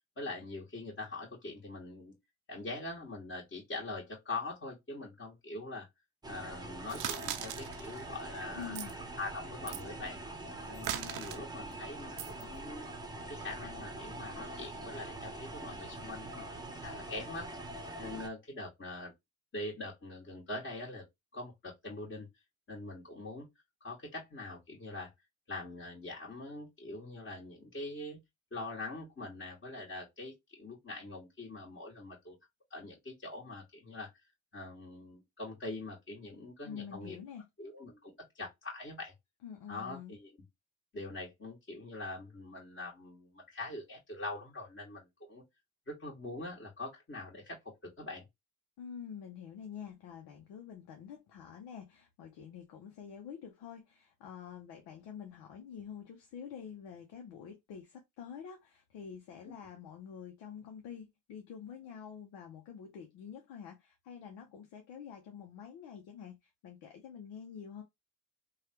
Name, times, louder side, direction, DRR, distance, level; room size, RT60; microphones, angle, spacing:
voice 1, 0.2-2.1 2.5-5.9 6.3-8.8 9.2-10.2 10.7-12.9 13.3-17.5 18.0-19.1 19.5-21.0 21.3-22.3 22.7-23.4 23.8-25.1 25.5-28.2 28.5-32.4 32.7-34.1 34.5-37.2 37.6-39.1 39.7-40.3 40.9-45.4 45.9-48.3, left 2 dB, 30° left, 1.6 m, -43 dB
sound 1, 6.2-18.3, right 2 dB, 10° right, 0.9 m, -44 dB
sound 2, 6.9-8.0 8.6-8.9 9.7-9.8 10.7-11.4 12.2-12.4, right 11 dB, 75° right, 0.6 m, -39 dB
voice 2, 8.6-8.9 36.6-37.5 39.4-40.1 48.8-67.8, left 7 dB, 80° left, 0.7 m, -47 dB
3.2 x 2.3 x 2.8 m
supercardioid pair, 75°, 39 cm